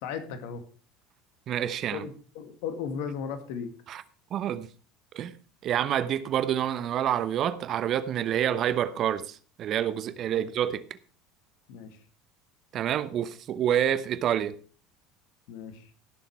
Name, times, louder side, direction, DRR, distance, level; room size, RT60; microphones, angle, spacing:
voice 1, 0.0-0.6 1.9-3.7 10.3-10.4 11.7-12.0 15.5-15.9, left 7 dB, 65° left, 2.0 m, -36 dB
voice 2, 1.5-2.0 3.9-4.0 4.3-4.7 5.1-5.3 5.6-10.8 12.7-14.6, right 10 dB, 50° right, 1.0 m, -28 dB
17.0 x 7.1 x 4.7 m
hypercardioid pair, 75°, 0 cm